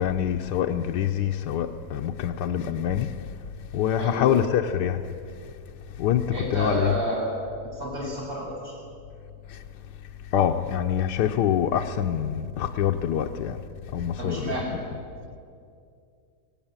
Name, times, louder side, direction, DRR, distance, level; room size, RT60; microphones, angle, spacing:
voice 1, 0.0-3.1 3.7-5.0 6.0-6.9 9.5-9.6 10.3-13.6 13.9-14.3, left 10 dB, 85° left, 1.3 m, -25 dB
voice 2, 4.0-4.4 6.3-7.3 7.7-8.8 14.2-14.8, right 1 dB, 55° right, 7.5 m, -30 dB
18.0 x 17.5 x 8.9 m
omnidirectional pair, 1.8 m